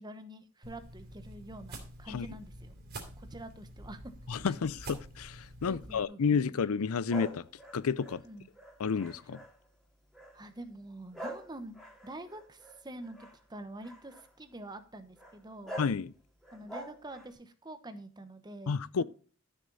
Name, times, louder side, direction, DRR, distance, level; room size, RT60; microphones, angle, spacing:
voice 1, 0.0-2.7 3.2-4.1 4.5-4.6 5.7-6.4 8.2-8.5 10.3-11.8 12.0-15.8 16.5-19.0, right 1 dB, 20° right, 1.0 m, -46 dB
sound 1, 0.6-6.0, right 1 dB, 50° right, 3.1 m, -47 dB
voice 2, 4.3-7.5 7.7-8.2 8.8-9.4 15.8-16.1 18.7-19.0, left 5 dB, 80° left, 0.5 m, -31 dB
sound 2, 7.1-9.7 10.1-10.5 11.1-13.4 13.8-14.3 15.2-15.3 15.6-16.0 16.4-17.3, equal, ahead, 2.4 m, -45 dB
12.5 x 7.1 x 4.0 m
head